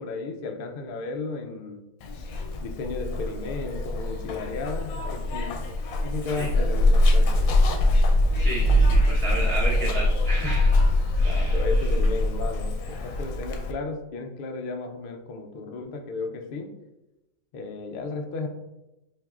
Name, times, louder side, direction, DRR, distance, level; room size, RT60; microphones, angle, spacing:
voice 1, 0.0-1.8 2.6-5.6 6.0-8.0 11.2-16.7 17.5-18.5, left 3 dB, 65° left, 4 dB, 0.5 m, -34 dB
Zipper (clothing), 2.0-13.7, left 1 dB, 85° left, 1.0 m, -23 dB
voice 2, 8.3-10.7 11.2-11.6, right 1 dB, 5° left, -6 dB, 0.7 m, -32 dB
5.4 x 2.5 x 2.4 m, 0.98 s
omnidirectional pair, 1.4 m